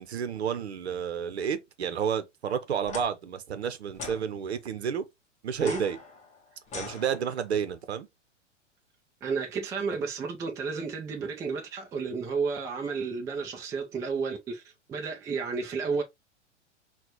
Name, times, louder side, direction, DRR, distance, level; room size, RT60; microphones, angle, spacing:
voice 1, 0.0-5.0 5.4-6.0 6.7-8.1, right 7 dB, 60° right, 0.8 m, -31 dB
sound 1, 2.8-3.1 3.9-4.2 5.5-7.6, left 4 dB, 20° left, 1.1 m, -41 dB
voice 2, 9.2-14.6 14.9-16.0, right 5 dB, 10° right, 0.4 m, -32 dB
5.7 x 2.4 x 3.0 m
figure-of-eight pair, 100°, 36 cm